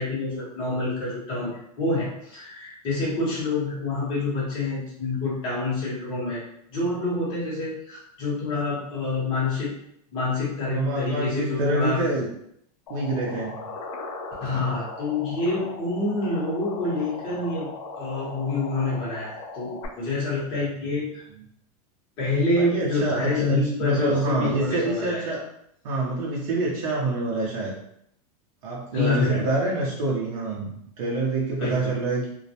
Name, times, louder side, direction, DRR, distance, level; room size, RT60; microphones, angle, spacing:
voice 1, 0.0-6.4 6.7-9.7 10.1-12.0 14.4-17.7 18.0-21.2 22.2-25.3 28.9-29.4 31.6-31.9, left 2 dB, 25° left, -7 dB, 0.9 m, -27 dB
voice 2, 10.7-12.3 12.9-13.6 22.6-25.5 25.8-27.7 28.6-32.3, right 2 dB, 60° right, -4 dB, 0.6 m, -26 dB
sound 1, 12.9-19.9, left 3 dB, 55° left, 0.4 m, -38 dB
2.2 x 2.0 x 2.7 m, 0.73 s
supercardioid pair, 180°, 20 cm